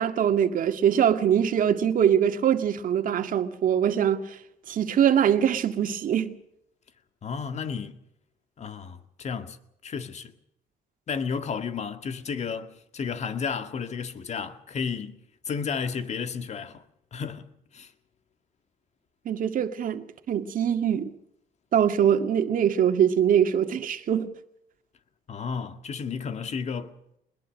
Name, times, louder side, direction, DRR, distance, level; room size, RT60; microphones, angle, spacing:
voice 1, 0.0-4.4 4.7-6.3 19.3-21.1 21.7-24.3, right 9 dB, 55° right, 2.1 m, -23 dB
voice 2, 7.2-8.0 8.6-9.6 9.8-10.3 11.1-16.8 17.1-17.9 25.3-27.0, left 6 dB, 40° left, 1.9 m, -32 dB
21.5 x 21.0 x 6.4 m
cardioid pair, 110°, 17 cm